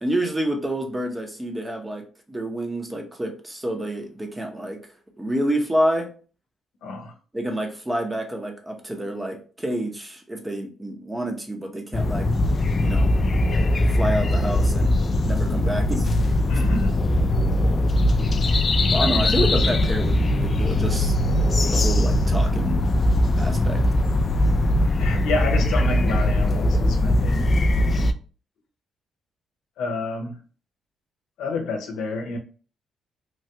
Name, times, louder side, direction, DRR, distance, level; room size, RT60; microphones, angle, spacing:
voice 1, 0.0-4.8 5.2-6.1 7.3-12.3 12.8-13.2 14.0-16.6 18.9-21.2 21.7-22.8 23.4-23.8, right 1 dB, 15° right, 0.7 m, -28 dB
voice 2, 6.8-7.1 16.5-16.9 19.0-19.1 25.0-27.5 29.8-30.4 31.4-32.4, left 3 dB, 85° left, 0.6 m, -29 dB
sound 1, 11.9-28.1, left 1 dB, 40° left, 0.3 m, -20 dB
3.2 x 2.3 x 2.8 m
cardioid pair, 90°, 0 cm